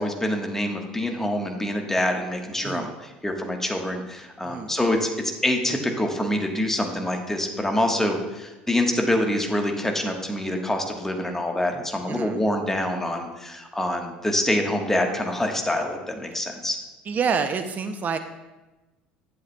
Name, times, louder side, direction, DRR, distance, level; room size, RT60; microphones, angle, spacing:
voice 1, 0.0-16.8, left 1 dB, 10° left, 3 dB, 1.3 m, -26 dB
voice 2, 12.1-12.4 17.1-18.2, right 6 dB, 35° right, 9 dB, 0.6 m, -27 dB
10.5 x 7.9 x 2.3 m, 1.1 s
hypercardioid pair, 70°, 5 cm